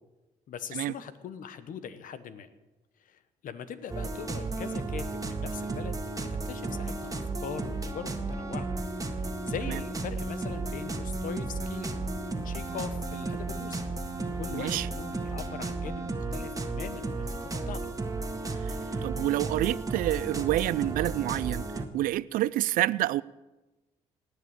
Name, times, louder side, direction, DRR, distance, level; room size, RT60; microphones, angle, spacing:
voice 1, 0.5-2.5 3.0-8.7 9.1-13.8 14.4-17.8, left 8 dB, 70° left, 1.2 m, -41 dB
sound 1, 3.9-21.9, right 3 dB, 25° right, 1.7 m, -34 dB
voice 2, 14.5-14.9 18.6-23.2, right 15 dB, 75° right, 0.4 m, -28 dB
18.5 x 6.7 x 8.2 m
supercardioid pair, 55°, 15 cm